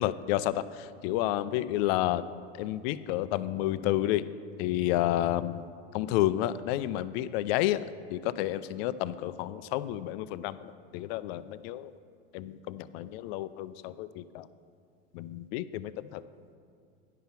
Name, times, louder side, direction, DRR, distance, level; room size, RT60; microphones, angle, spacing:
voice 1, 0.0-2.2 2.5-4.3 4.6-11.9 12.3-14.5 15.1-16.2, left 14 dB, 65° left, 15 dB, 0.5 m, -30 dB
10.0 x 5.7 x 5.7 m, 2.2 s
supercardioid pair, 125°, 33 cm